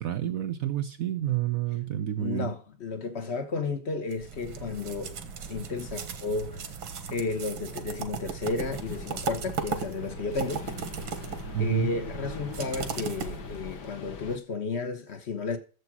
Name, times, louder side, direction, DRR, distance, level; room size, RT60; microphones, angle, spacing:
voice 1, 0.0-2.5 11.5-11.9, right 11 dB, 65° right, 0.9 m, -29 dB
voice 2, 2.2-5.2 5.5-6.6 7.1-10.7 11.6-15.6, left 4 dB, 40° left, 1.1 m, -33 dB
sound 1, 4.1-13.9, right 6 dB, 85° right, 2.1 m, -37 dB
sound 2, 8.6-14.4, left 6 dB, 60° left, 1.6 m, -42 dB
11.0 x 7.6 x 6.0 m
omnidirectional pair, 2.1 m